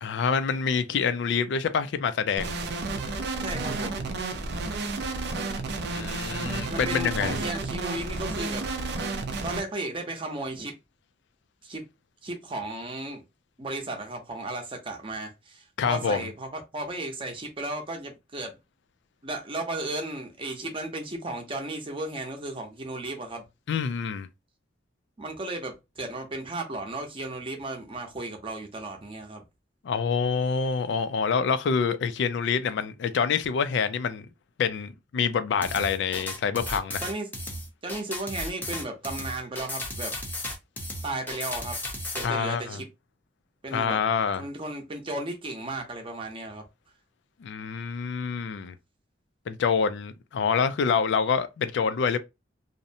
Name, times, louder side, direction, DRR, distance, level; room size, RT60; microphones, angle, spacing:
voice 1, 0.0-2.5 5.9-7.5 15.8-16.3 23.7-24.3 29.8-34.3 34.6-37.0 42.2-42.8 43.7-44.4 47.4-48.7 49.5-52.2, left 6 dB, 70° left, 0.3 m, -26 dB
sound 1, 2.4-9.6, right 3 dB, 65° right, 0.5 m, -31 dB
voice 2, 3.4-4.1 6.7-9.2 9.4-10.8 11.6-11.8 12.2-13.2 13.6-18.5 19.2-23.4 25.2-29.4 37.0-37.3 37.8-40.1 41.0-41.8 42.1-42.9 43.6-44.0 44.3-46.6, right 2 dB, 30° right, 0.7 m, -35 dB
sound 2, 35.6-42.3, left 1 dB, 10° left, 0.6 m, -34 dB
2.6 x 2.0 x 2.6 m
head